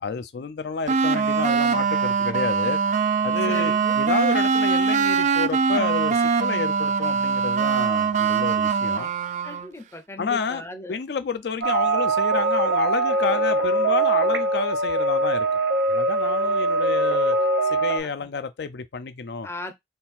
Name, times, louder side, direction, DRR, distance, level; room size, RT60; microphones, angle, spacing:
voice 1, 0.0-2.8 3.2-9.1 10.2-15.6 15.9-17.4 17.7-19.5, left 5 dB, 65° left, 0.4 m, -30 dB
sound 1, 0.9-9.7, right 5 dB, 40° right, 0.3 m, -22 dB
voice 2, 3.5-4.0 9.4-11.0 18.0-18.3 19.4-19.7, left 1 dB, 15° left, 0.5 m, -38 dB
sound 2, 11.6-18.0, right 2 dB, 80° right, 1.1 m, -22 dB
3.7 x 2.4 x 4.2 m
head